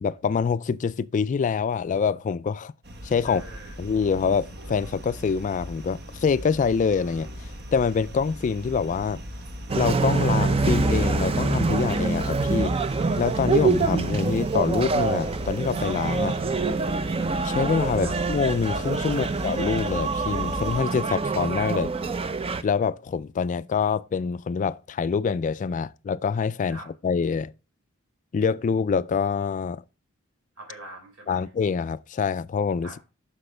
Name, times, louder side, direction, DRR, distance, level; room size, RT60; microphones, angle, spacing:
voice 1, 0.0-2.7 3.0-3.4 3.8-9.2 9.8-12.7 13.2-16.4 17.4-21.9 22.6-27.5 28.3-29.8 31.3-33.1, left 5 dB, 35° left, 0.3 m, -25 dB
sound 1, 2.8-20.8, equal, 50° right, 1.0 m, -39 dB
voice 2, 3.2-3.8 18.0-18.2 19.1-19.4 26.7-26.9 30.6-31.5 32.8-33.0, right 1 dB, 70° right, 4.0 m, -43 dB
sound 2, 9.7-22.6, right 3 dB, 30° right, 0.5 m, -25 dB
7.9 x 6.0 x 3.3 m
head